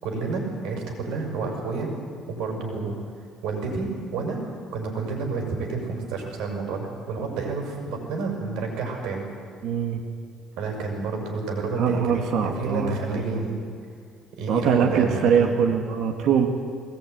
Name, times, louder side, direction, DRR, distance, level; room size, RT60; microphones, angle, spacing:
voice 1, 0.0-1.9 2.3-3.0 3.4-4.4 4.7-9.3 10.6-13.6 14.3-15.6, right 4 dB, 85° right, 2 dB, 6.0 m, -30 dB
voice 2, 9.6-10.0 11.8-13.4 14.5-16.5, right 7 dB, 60° right, 3 dB, 2.0 m, -23 dB
21.0 x 19.0 x 9.5 m, 2.2 s
cardioid pair, 155°, 0 cm